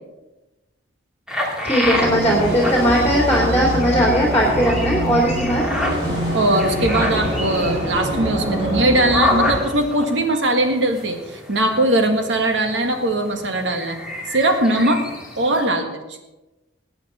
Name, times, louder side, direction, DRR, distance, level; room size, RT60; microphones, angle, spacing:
sound 1, 1.3-15.6, left 1 dB, 5° right, 2.0 m, -29 dB
voice 1, 1.6-5.6, equal, 10° left, -3 dB, 2.5 m, -18 dB
sound 2, 1.8-9.6, equal, 30° right, 4.7 m, -25 dB
voice 2, 6.3-14.0 14.3-15.0 15.4-16.3, right 1 dB, 80° right, 5 dB, 1.7 m, -20 dB
19.0 x 9.0 x 4.3 m, 1.1 s
head